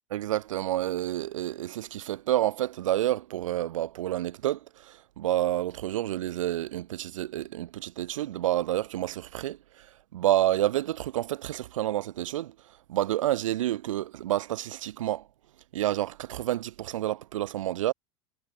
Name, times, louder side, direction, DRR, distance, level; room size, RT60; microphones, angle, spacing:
voice 1, 0.1-9.9 10.1-12.5 12.9-15.2 15.7-17.9, right 13 dB, 70° right, 4.3 m, -29 dB
figure-of-eight pair, 85°, 17 cm